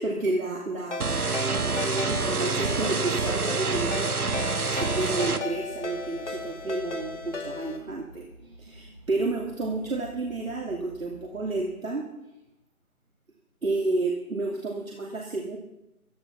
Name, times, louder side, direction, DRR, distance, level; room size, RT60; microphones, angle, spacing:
voice 1, 0.0-8.3 8.6-12.1 13.6-15.6, right 2 dB, 65° right, -1 dB, 2.8 m, -31 dB
Ringtone, 0.9-7.8, left 4 dB, 55° left, 2.3 m, -36 dB
sound 1, 1.0-5.4, right 4 dB, 85° right, 1.3 m, -27 dB
sound 2, 5.3-11.7, right 1 dB, 30° right, 1.2 m, -49 dB
15.5 x 10.5 x 5.8 m, 0.90 s
figure-of-eight pair, 165°, 43 cm